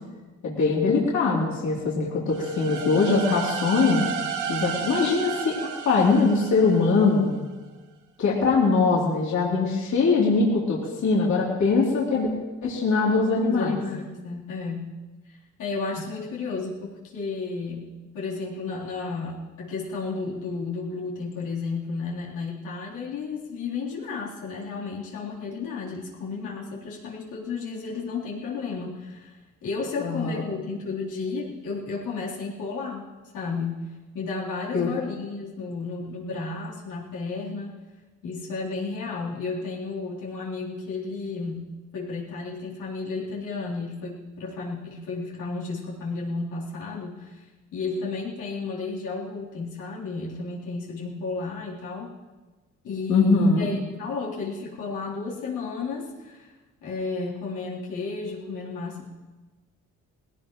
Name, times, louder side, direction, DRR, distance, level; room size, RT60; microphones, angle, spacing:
voice 1, 0.4-4.0 4.5-7.3 8.2-12.3 12.6-13.8 30.0-30.4 34.7-34.9 53.1-53.7, left 4 dB, 70° left, -4 dB, 3.3 m, -22 dB
sound 1, 2.3-7.1, right 7 dB, 80° right, 1.4 m, -32 dB
voice 2, 13.5-15.0 15.3-33.0 33.3-37.7 38.2-47.4 47.7-52.1 52.8-56.5 56.8-59.1, left 4 dB, 85° left, -6 dB, 3.7 m, -33 dB
19.5 x 17.0 x 3.1 m, 1.3 s
cardioid pair, 90°, 30 cm